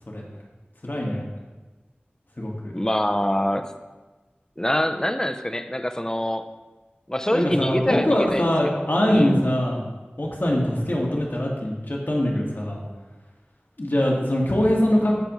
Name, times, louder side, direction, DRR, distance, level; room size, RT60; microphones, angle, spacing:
voice 1, 0.8-1.2 2.4-2.7 7.3-9.8 10.2-12.8 13.8-15.1, left 1 dB, 60° left, -3 dB, 1.8 m, -22 dB
voice 2, 2.7-3.7 4.6-6.5 7.1-9.5, left 1 dB, 15° left, 7 dB, 0.6 m, -25 dB
15.5 x 5.1 x 3.1 m, 1.2 s
wide cardioid pair, 40°, 4 cm